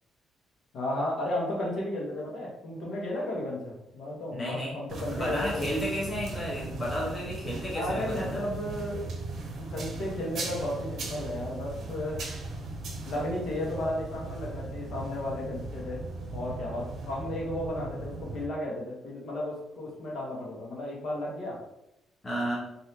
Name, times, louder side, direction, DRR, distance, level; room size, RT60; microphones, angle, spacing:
voice 1, 0.7-5.6 7.7-9.1 9.6-12.2 13.1-16.0 16.3-21.6, left 1 dB, 70° left, -3 dB, 1.1 m, -34 dB
voice 2, 4.3-4.7 5.1-8.4 22.2-22.6, equal, 20° left, -6 dB, 1.1 m, -32 dB
sound 1, 4.9-18.5, right 3 dB, 65° right, 0.7 m, -38 dB
3.1 x 2.7 x 2.8 m, 0.86 s
cardioid pair, 90°, 0 cm